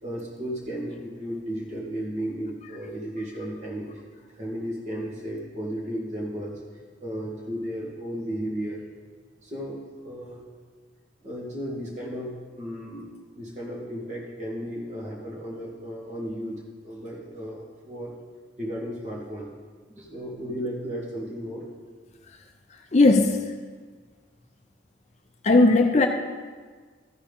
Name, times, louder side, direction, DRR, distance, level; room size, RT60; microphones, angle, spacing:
voice 1, 0.0-4.0 4.4-6.6 7.0-8.8 9.4-10.5 11.2-13.1 13.4-18.1 18.6-19.5 20.0-21.7, equal, 35° right, -3 dB, 2.0 m, -34 dB
voice 2, 22.9-23.4 25.4-26.1, left 2 dB, 35° left, 5 dB, 0.5 m, -17 dB
13.5 x 4.6 x 5.3 m, 1.5 s
head